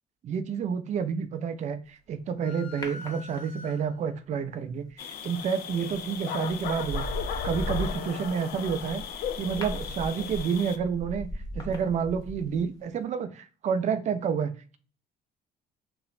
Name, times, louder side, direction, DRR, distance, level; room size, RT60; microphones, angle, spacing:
voice 1, 0.2-7.0 7.4-9.0 9.4-11.3 11.5-14.8, right 6 dB, 45° right, 10 dB, 0.4 m, -29 dB
sound 1, 2.4-4.2, left 3 dB, 90° left, 0.9 m, -45 dB
sound 2, 2.8-3.9 5.7-6.0 6.5-12.7 13.0-13.1, left 1 dB, 20° left, 0.7 m, -37 dB
sound 3, 5.0-10.8, left 9 dB, 65° left, 0.4 m, -36 dB
3.0 x 2.0 x 2.3 m, 0.39 s
cardioid pair, 110°, 17 cm